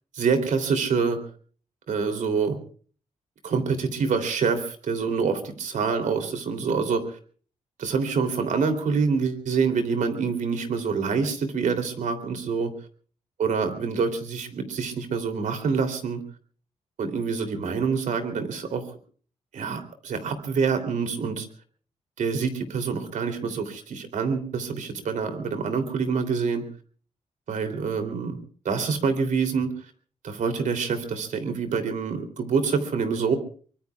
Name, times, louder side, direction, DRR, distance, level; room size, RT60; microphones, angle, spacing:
voice 1, 0.1-1.2 1.9-2.6 3.4-7.2 7.8-12.7 13.4-16.2 17.0-18.8 19.5-21.5 22.2-26.6 27.5-28.4 28.6-29.7 30.2-33.4, right 5 dB, 80° right, 7 dB, 3.1 m, -26 dB
24.0 x 24.0 x 2.4 m, 0.43 s
cardioid pair, 90°, 13 cm